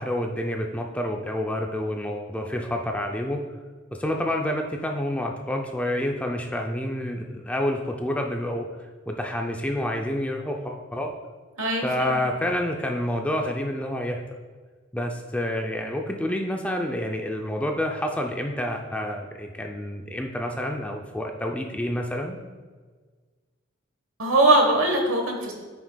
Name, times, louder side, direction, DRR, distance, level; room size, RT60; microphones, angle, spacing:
voice 1, 0.0-3.4 4.0-8.7 9.1-11.1 11.8-14.2 14.9-22.4, left 1 dB, 5° left, 2 dB, 0.4 m, -28 dB
voice 2, 11.6-12.2 24.2-25.5, right 2 dB, 80° right, 2 dB, 1.2 m, -21 dB
9.0 x 6.0 x 2.2 m, 1.4 s
head